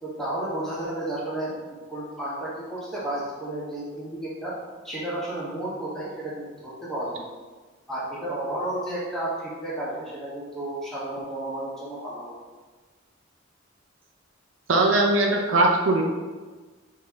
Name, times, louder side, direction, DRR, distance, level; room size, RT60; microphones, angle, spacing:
voice 1, 0.0-4.6 4.8-7.3 7.9-12.3, right 1 dB, ahead, -8 dB, 1.2 m, -32 dB
voice 2, 14.7-16.0, right 2 dB, 80° right, 1 dB, 0.6 m, -20 dB
4.8 x 2.8 x 3.5 m, 1.3 s
head